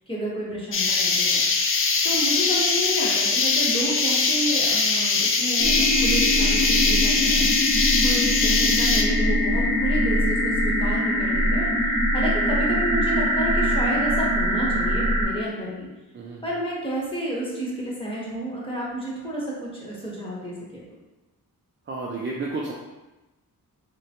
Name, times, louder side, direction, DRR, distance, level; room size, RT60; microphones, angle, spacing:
voice 1, 0.1-1.4 2.0-11.7 12.1-15.9 16.4-20.8, right 1 dB, 15° left, -5 dB, 1.1 m, -30 dB
sound 1, 0.7-9.0, left 4 dB, 35° left, 0.4 m, -22 dB
sound 2, 5.6-15.3, equal, 70° left, 0.8 m, -22 dB
voice 2, 21.9-22.7, right 3 dB, 30° right, -3 dB, 0.4 m, -31 dB
3.7 x 2.2 x 2.8 m, 1.1 s
cardioid pair, 70°, 38 cm